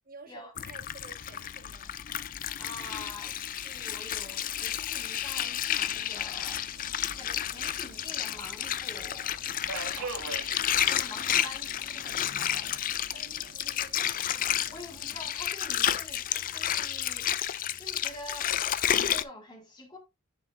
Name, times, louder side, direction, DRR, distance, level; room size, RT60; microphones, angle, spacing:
voice 1, 0.1-2.0 9.7-10.1 13.1-14.3, right 3 dB, 40° right, 1.5 m, -51 dB
Water, 0.6-19.2, left 10 dB, 40° left, 0.4 m, -31 dB
voice 2, 2.6-3.4 3.6-6.7 7.1-9.3 10.0-10.1 10.8-12.7 14.7-17.3 17.8-18.6 18.8-20.0, left 1 dB, 20° left, 2.1 m, -46 dB
Subway metro underground, 5.4-15.3, right 4 dB, 85° right, 1.7 m, -46 dB
9.8 x 4.8 x 2.6 m
head